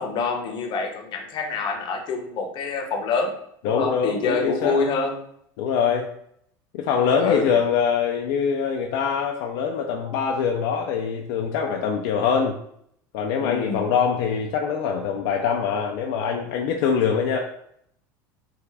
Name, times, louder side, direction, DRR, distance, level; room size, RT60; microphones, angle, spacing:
voice 1, 0.0-3.4 3.6-5.2 7.2-7.5 13.4-13.8, left 4 dB, 50° left, 4 dB, 0.8 m, -26 dB
voice 2, 3.6-4.8 5.6-6.1 6.7-12.6 13.1-17.4, left 6 dB, 70° left, 1 dB, 0.4 m, -24 dB
3.4 x 2.4 x 3.3 m, 0.70 s
supercardioid pair, 100°, 10 cm